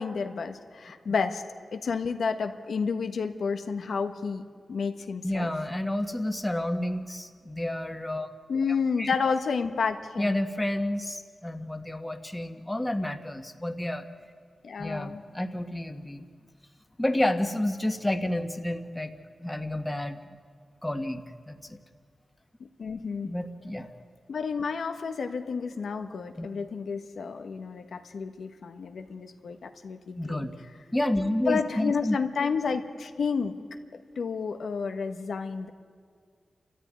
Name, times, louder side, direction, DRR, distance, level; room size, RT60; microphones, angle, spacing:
voice 1, 0.0-1.4 1.7-4.4 4.7-5.5 8.5-10.4 14.6-15.2 22.6-23.3 24.3-30.5 31.5-33.5 34.1-35.7, left 5 dB, 80° left, 6 dB, 1.3 m, -30 dB
voice 2, 5.2-8.3 9.0-9.1 10.2-14.0 14.8-16.2 17.0-19.1 19.4-20.2 20.8-21.8 23.2-24.0 26.4-26.5 30.2-30.5 30.9-32.2, left 1 dB, 10° left, 6 dB, 1.5 m, -30 dB
30.0 x 13.5 x 9.6 m, 2.1 s
wide cardioid pair, 80°, 0 cm